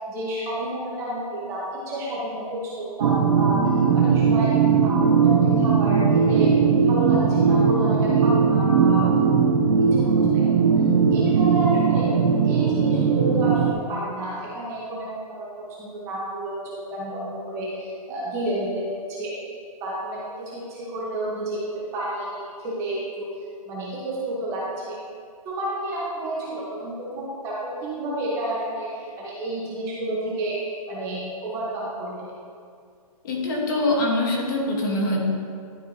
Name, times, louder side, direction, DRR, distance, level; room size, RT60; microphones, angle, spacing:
voice 1, 0.1-4.5 4.8-6.5 6.9-9.1 9.9-10.7 11.1-12.1 12.4-15.1 15.4-19.3 19.8-23.3 23.7-25.0 25.4-32.3, right 1 dB, 15° right, -6 dB, 1.0 m, -30 dB
sound 1, 3.0-13.7, right 6 dB, 55° right, 0.6 m, -19 dB
voice 2, 33.2-35.2, left 1 dB, 30° left, -1 dB, 1.3 m, -23 dB
12.0 x 4.7 x 2.7 m, 2.2 s
hypercardioid pair, 165°, 20 cm